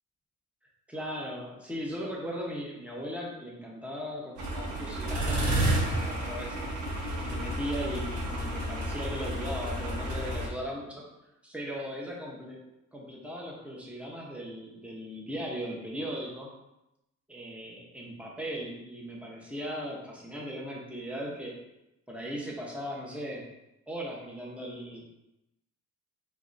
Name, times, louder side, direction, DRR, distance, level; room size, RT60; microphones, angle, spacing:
voice 1, 0.9-6.7 7.2-11.1 11.5-12.6 12.9-16.5 17.3-21.6 22.1-23.5 23.9-25.1, equal, 5° right, -3 dB, 1.0 m, -38 dB
sound 1, 4.4-10.5, right 1 dB, 70° right, 1.2 m, -31 dB
4.4 x 3.3 x 2.7 m, 0.90 s
cardioid pair, 90°, 30 cm